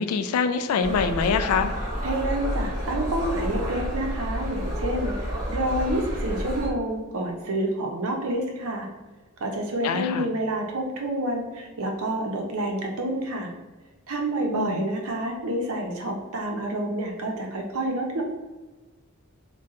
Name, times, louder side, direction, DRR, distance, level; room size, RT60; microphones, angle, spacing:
voice 1, 0.0-1.7 9.8-10.3 14.5-14.8, left 5 dB, 90° left, 8 dB, 0.3 m, -24 dB
sound 1, 0.8-6.7, equal, 40° right, 0.9 m, -30 dB
voice 2, 2.0-8.9 9.4-13.5 14.1-18.2, right 1 dB, 80° right, 2 dB, 0.6 m, -28 dB
2.4 x 2.2 x 3.9 m, 1.2 s
head